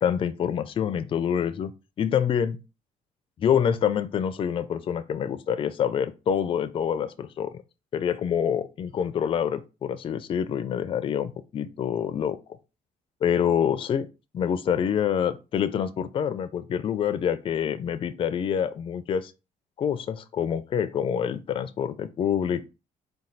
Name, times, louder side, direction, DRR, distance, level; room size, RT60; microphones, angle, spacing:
voice 1, 0.0-1.7 2.0-2.6 3.4-7.6 7.9-12.4 13.2-14.1 14.3-19.3 19.8-22.7, left 8 dB, 35° left, 0.4 m, -26 dB
4.3 x 2.3 x 3.9 m
cardioid pair, 135°, 15 cm